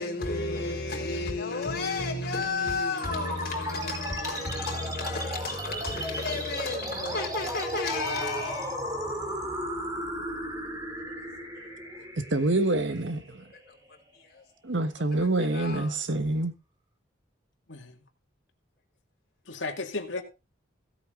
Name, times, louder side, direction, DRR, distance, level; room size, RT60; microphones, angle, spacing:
voice 1, 0.0-8.8 11.0-11.3 11.5-11.7 12.1-12.3 13.5-14.4 15.1-16.4, left 3 dB, 50° left, 4.5 m, -33 dB
sound 1, 3.0-13.9, equal, 20° right, 3.0 m, -35 dB
voice 2, 12.3-13.4 14.6-16.5, right 2 dB, 80° right, 1.4 m, -26 dB
voice 3, 17.7-18.0 19.5-20.2, left 3 dB, 85° left, 2.2 m, -34 dB
16.0 x 8.6 x 3.8 m
head